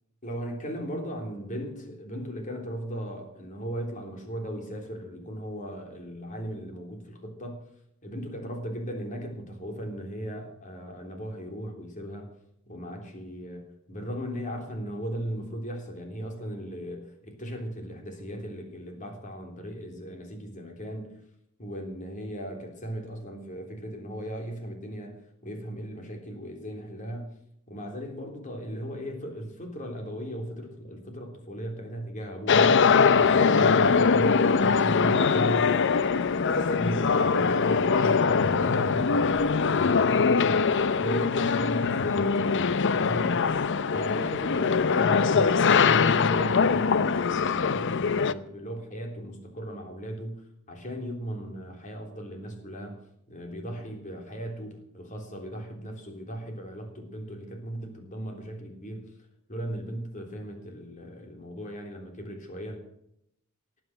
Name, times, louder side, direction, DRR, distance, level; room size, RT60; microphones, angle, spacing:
voice 1, 0.2-7.6 8.0-12.3 12.7-21.2 21.6-27.4 27.7-32.9 33.1-35.8 36.4-40.7 41.0-42.4 42.8-43.6 43.9-53.0 53.3-59.1 59.5-62.8, equal, 35° left, 3 dB, 3.4 m, -37 dB
sound 1, 32.5-48.3, left 5 dB, 60° left, 0.6 m, -22 dB
18.5 x 7.8 x 7.6 m, 0.77 s
head